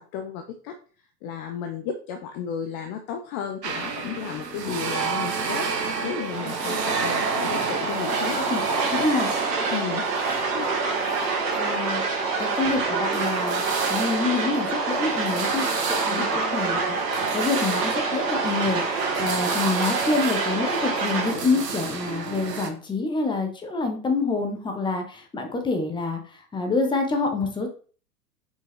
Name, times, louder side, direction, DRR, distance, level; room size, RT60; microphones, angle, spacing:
voice 1, 0.1-0.7 1.2-5.7 6.0-8.4 9.7-10.0 10.5-10.7 16.1-16.4, left 7 dB, 30° left, 5 dB, 0.7 m, -33 dB
sound 1, 3.6-22.7, right 5 dB, 75° right, 1.2 m, -31 dB
sound 2, 6.3-21.3, right 4 dB, 55° right, 2.7 m, -27 dB
voice 2, 8.9-9.3 11.5-12.0 12.4-13.6 13.9-17.0 17.3-18.8 19.2-26.2 26.5-27.7, left 3 dB, 10° left, 4 dB, 1.2 m, -26 dB
5.9 x 5.5 x 3.7 m, 0.40 s
figure-of-eight pair, 100°, 49 cm